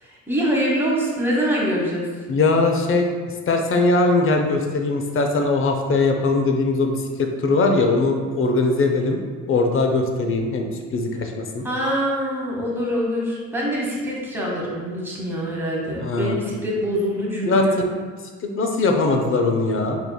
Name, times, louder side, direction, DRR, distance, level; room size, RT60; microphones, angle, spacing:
voice 1, 0.0-2.2 11.6-17.8, equal, 5° right, -5 dB, 1.2 m, -24 dB
voice 2, 2.3-3.1 3.5-9.2 9.5-11.6 16.0-16.5 17.4-17.8 18.4-20.0, left 3 dB, 45° left, 4 dB, 0.6 m, -20 dB
4.6 x 3.4 x 2.2 m, 1.5 s
cardioid pair, 90°, 30 cm